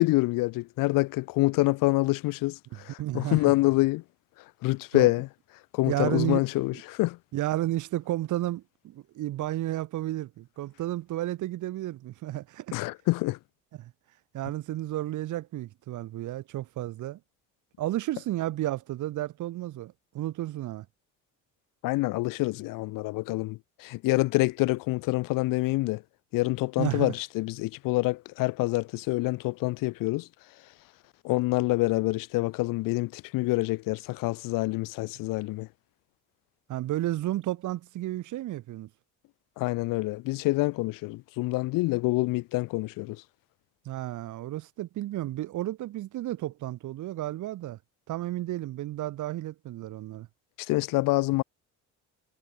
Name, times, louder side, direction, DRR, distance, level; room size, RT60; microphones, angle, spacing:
voice 1, 0.0-4.0 4.6-5.3 5.7-7.2 12.7-13.4 21.8-26.0 26.3-30.3 31.2-35.7 39.6-43.2 50.6-51.4, left 21 dB, 85° left, 1.3 m, -26 dB
voice 2, 3.0-3.4 4.9-5.1 5.9-6.4 7.3-12.7 13.8-13.9 14.3-17.2 17.8-20.9 26.8-27.1 36.7-38.9 43.9-47.8 48.1-50.3, right 15 dB, 65° right, 5.0 m, -32 dB
cardioid pair, 140°, 32 cm